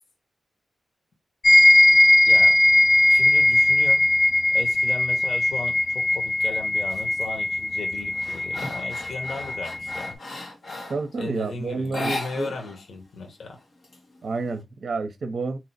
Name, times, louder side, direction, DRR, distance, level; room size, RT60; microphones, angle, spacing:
sound 1, 1.4-10.1, left 1 dB, 35° left, 0.5 m, -19 dB
voice 1, 2.3-2.6 3.1-4.1 4.5-10.2 11.2-13.6, left 3 dB, 80° left, 1.0 m, -36 dB
sound 2, 6.9-7.3 7.7-11.1 11.8-12.8 13.1-13.2 13.6-14.5, left 2 dB, 55° left, 1.3 m, -36 dB
voice 2, 10.9-12.6 14.2-15.6, right 3 dB, 70° right, 0.6 m, -29 dB
2.9 x 2.0 x 4.0 m
cardioid pair, 75°, 0 cm